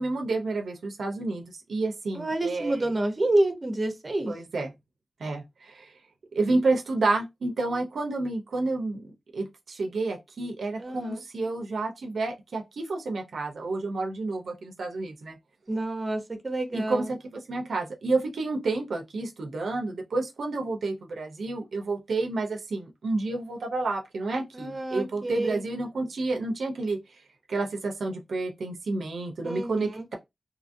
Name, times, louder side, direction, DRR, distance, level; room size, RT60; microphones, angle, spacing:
voice 1, 0.0-2.9 4.3-4.7 5.2-6.0 6.3-15.4 16.7-27.2 27.5-30.1, right 3 dB, 90° right, 0.5 m, -30 dB
voice 2, 2.1-4.3 10.8-11.2 15.7-17.1 24.5-25.6 29.4-30.0, right 1 dB, 35° right, 0.7 m, -28 dB
2.7 x 2.5 x 2.5 m
wide cardioid pair, 80°, 0 cm